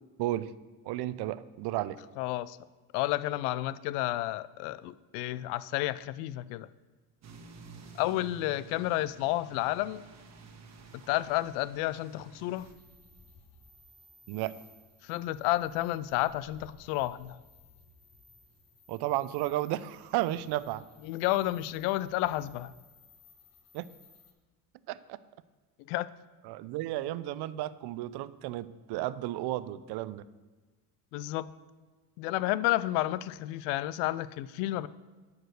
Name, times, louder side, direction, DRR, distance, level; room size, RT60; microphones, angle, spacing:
voice 1, 0.2-0.5 0.8-2.0 14.3-14.5 18.9-20.8 23.7-23.9 24.9-25.2 26.4-30.2, right 15 dB, 60° right, 16 dB, 0.6 m, -33 dB
voice 2, 2.2-2.6 2.9-6.7 7.9-10.0 11.1-12.7 15.0-17.4 21.0-22.7 25.9-26.1 31.1-31.5 32.2-34.9, left 16 dB, 75° left, 17 dB, 0.5 m, -31 dB
sound 1, 7.2-12.7, right 4 dB, 35° right, 1.4 m, -51 dB
sound 2, 12.5-24.3, left 2 dB, 35° left, 1.8 m, -59 dB
11.0 x 4.8 x 6.4 m, 1.3 s
supercardioid pair, 80°, 45 cm